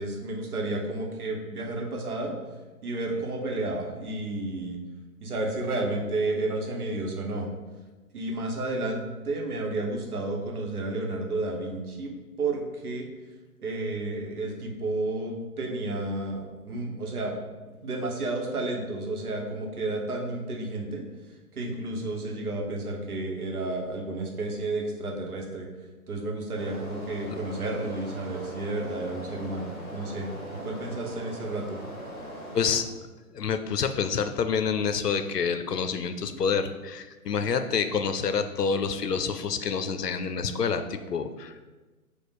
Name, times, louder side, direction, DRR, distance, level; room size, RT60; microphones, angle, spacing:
voice 1, 0.0-2.3 2.8-4.8 5.2-7.5 8.1-12.1 12.4-13.0 13.6-17.4 17.8-21.0 21.5-25.7 26.1-31.8, right 2 dB, 70° right, 0 dB, 1.1 m, -31 dB
sound 1, 26.6-32.8, equal, ahead, 0.7 m, -41 dB
voice 2, 32.5-32.9 33.3-41.6, left 6 dB, 85° left, 9 dB, 0.6 m, -28 dB
4.5 x 2.4 x 4.8 m, 1.2 s
figure-of-eight pair, 135°, 46 cm